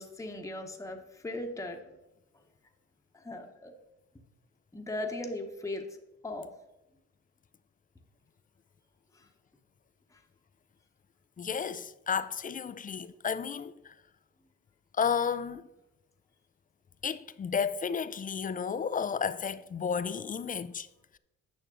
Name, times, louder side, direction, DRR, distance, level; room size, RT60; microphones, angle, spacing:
voice 1, 0.0-1.8 3.1-3.7 4.7-6.5 9.1-9.3 10.1-10.2, left 2 dB, 10° left, 1.0 m, -38 dB
voice 2, 11.4-13.9 15.0-15.7 17.0-20.9, left 6 dB, 30° left, 0.4 m, -32 dB
9.3 x 6.1 x 3.7 m
cardioid pair, 90°, 30 cm